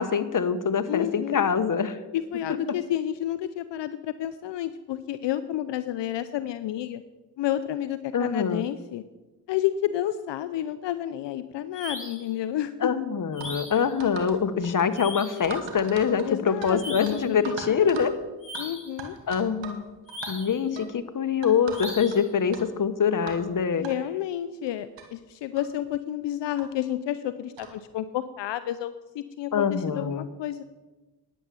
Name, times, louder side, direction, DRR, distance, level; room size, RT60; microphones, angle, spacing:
voice 1, 0.0-2.0 8.1-8.6 12.8-18.2 19.3-19.8 20.3-23.8 29.5-30.3, left 7 dB, 45° left, 12 dB, 1.1 m, -24 dB
voice 2, 0.9-1.5 2.1-7.0 7.4-9.0 9.5-12.9 16.2-18.1 18.6-19.1 23.8-30.6, left 12 dB, 80° left, 13 dB, 0.6 m, -30 dB
sound 1, 11.7-12.3 13.3-13.9 14.9-15.5 16.7-17.3 18.4-19.0 20.1-20.6 21.7-22.3, left 1 dB, 30° left, 4.6 m, -38 dB
sound 2, 13.4-13.5 14.0-14.4 14.6-14.9 15.4-16.8 17.0-17.1 17.4-18.1 18.5-18.6 19.0-19.8 20.1-20.3 20.8-20.9 21.4-22.2 22.5-22.6 23.3-23.4 23.8-23.9 24.7-24.8 25.0-25.1 25.6-25.7 26.6-26.7 27.6-27.8, right 5 dB, 85° right, 1.7 m, -39 dB
11.0 x 8.7 x 6.9 m, 1.1 s
supercardioid pair, 45°, 43 cm